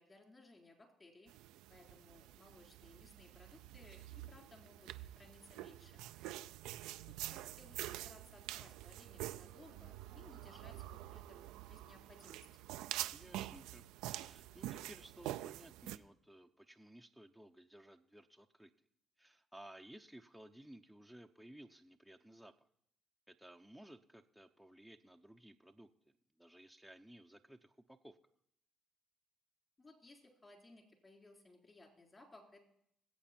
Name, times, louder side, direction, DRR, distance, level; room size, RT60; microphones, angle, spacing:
voice 1, 0.0-1.3 1.7-4.9 5.2-6.1 7.1-12.6 29.8-32.6, left 2 dB, 30° left, 2 dB, 3.7 m, -61 dB
sound 1, 1.3-16.0, right 15 dB, 90° right, 0.4 m, -47 dB
voice 2, 13.1-18.7 19.2-22.7 23.3-28.2, right 1 dB, ahead, 5 dB, 0.8 m, -58 dB
20.0 x 8.2 x 4.4 m, 0.71 s
supercardioid pair, 75°, 0 cm